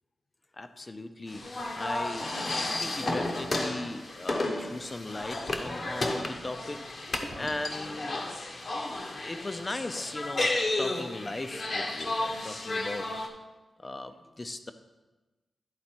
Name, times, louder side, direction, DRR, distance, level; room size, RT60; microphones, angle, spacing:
voice 1, 0.5-6.8 7.4-8.2 9.1-10.5 10.8-13.1 13.8-14.7, left 2 dB, 30° left, 9 dB, 0.5 m, -38 dB
sound 1, 1.3-13.3, left 2 dB, 50° left, 0.9 m, -33 dB
11.0 x 4.0 x 4.4 m, 1.2 s
wide cardioid pair, 90°, 0 cm